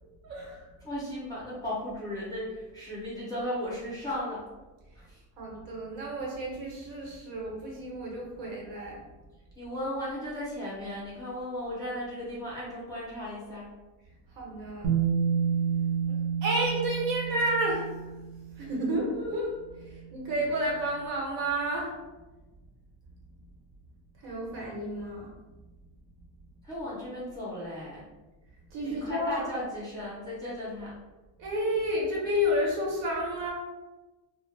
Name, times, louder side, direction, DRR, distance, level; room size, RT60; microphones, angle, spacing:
voice 1, 0.2-0.7 5.4-9.1 14.3-15.0 16.1-18.0 18.5-22.0 24.2-25.3 28.7-29.4 31.4-33.5, equal, 85° right, -3 dB, 1.0 m, -31 dB
voice 2, 0.8-4.4 5.0-5.2 9.6-13.7 26.6-28.0 28.8-30.9, left 1 dB, 10° left, -8 dB, 0.3 m, -36 dB
Bass guitar, 14.8-18.8 19.9-20.0, right 7 dB, 35° right, 0.6 m, -29 dB
2.1 x 2.0 x 3.1 m, 1.2 s
cardioid pair, 170°, 43 cm